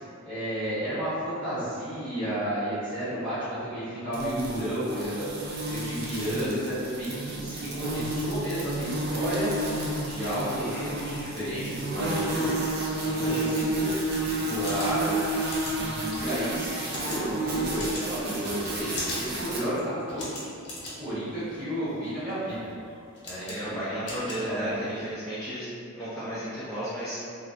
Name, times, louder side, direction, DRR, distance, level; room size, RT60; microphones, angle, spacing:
voice 1, 0.2-5.3 5.6-9.7 10.0-12.5 13.0-14.0 14.2-15.1 15.7-20.3 20.9-22.7 23.2-24.8, right 1 dB, 20° right, -17 dB, 1.3 m, -32 dB
sound 1, 4.1-19.6, right 1 dB, 45° right, 0.4 m, -31 dB
voice 2, 10.6-10.9 19.5-19.6 23.4-25.7 25.9-27.2, equal, 5° left, -14 dB, 0.5 m, -34 dB
sound 2, 14.6-25.1, left 1 dB, 50° left, 0.8 m, -41 dB
2.5 x 2.5 x 3.2 m, 2.4 s
head